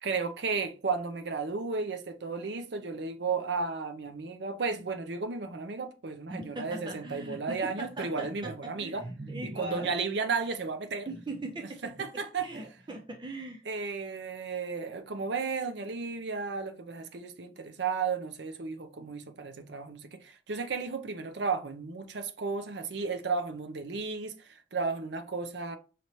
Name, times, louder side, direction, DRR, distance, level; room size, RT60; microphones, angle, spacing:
voice 1, 0.0-9.0 9.4-11.1 11.8-12.5 13.7-25.8, right 4 dB, 65° right, 0.6 m, -34 dB
voice 2, 6.3-9.9 11.1-13.6, right 1 dB, 25° right, 0.5 m, -40 dB
5.2 x 2.9 x 3.0 m
head